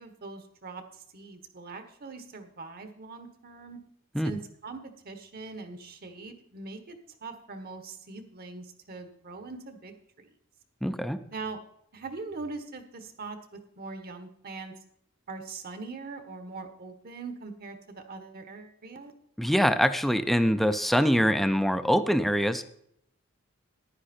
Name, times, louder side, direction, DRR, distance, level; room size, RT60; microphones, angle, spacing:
voice 1, 0.0-3.8 4.2-10.3 11.3-11.6 11.9-14.7 15.3-19.1, right 3 dB, 45° right, 8 dB, 1.3 m, -42 dB
voice 2, 10.8-11.2 19.4-22.6, equal, ahead, 10 dB, 0.5 m, -24 dB
10.5 x 9.8 x 4.4 m, 0.69 s
head